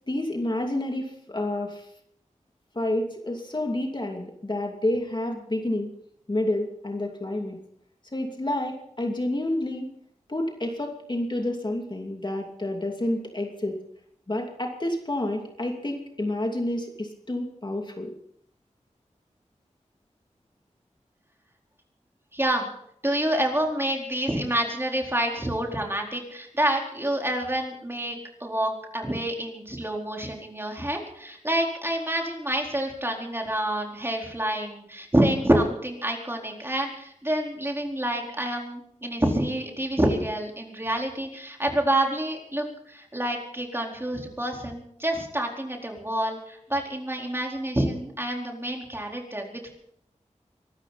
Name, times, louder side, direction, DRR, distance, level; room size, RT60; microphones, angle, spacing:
voice 1, 0.1-1.9 2.7-5.9 6.3-7.6 8.1-9.9 10.3-13.8 14.3-18.1, left 1 dB, 35° left, 2 dB, 2.7 m, -29 dB
voice 2, 22.3-22.7 23.0-49.7, right 1 dB, 20° right, 0 dB, 4.3 m, -27 dB
24.0 x 13.0 x 4.3 m, 0.70 s
wide cardioid pair, 50°, 13 cm